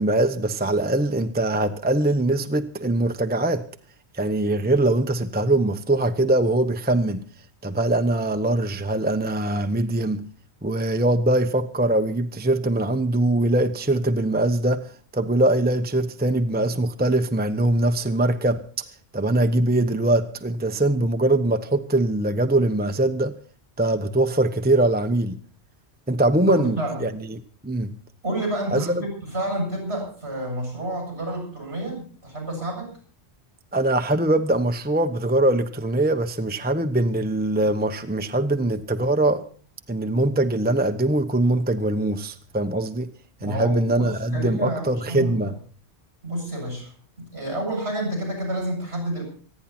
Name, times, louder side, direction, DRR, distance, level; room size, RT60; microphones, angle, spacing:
voice 1, 0.0-3.6 4.1-7.2 7.6-10.3 10.6-18.6 19.1-23.3 23.8-25.4 26.1-27.9 28.7-29.0 33.7-39.4 39.9-43.1 43.4-45.5, right 1 dB, 10° right, 0.9 m, -22 dB
voice 2, 26.4-27.1 28.2-32.9 43.4-45.5 46.2-49.2, right 1 dB, 70° right, 8.3 m, -30 dB
25.5 x 10.0 x 4.3 m
omnidirectional pair, 1.1 m